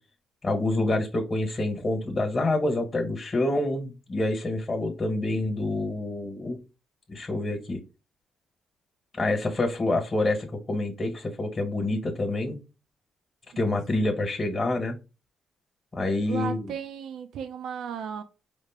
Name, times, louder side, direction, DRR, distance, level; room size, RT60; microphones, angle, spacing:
voice 1, 0.4-6.6 7.1-7.8 9.1-12.6 13.6-14.9 15.9-16.7, left 2 dB, 30° left, 1.3 m, -27 dB
voice 2, 16.3-18.2, right 7 dB, 75° right, 0.5 m, -35 dB
5.0 x 2.1 x 3.5 m
cardioid pair, 90°, 0 cm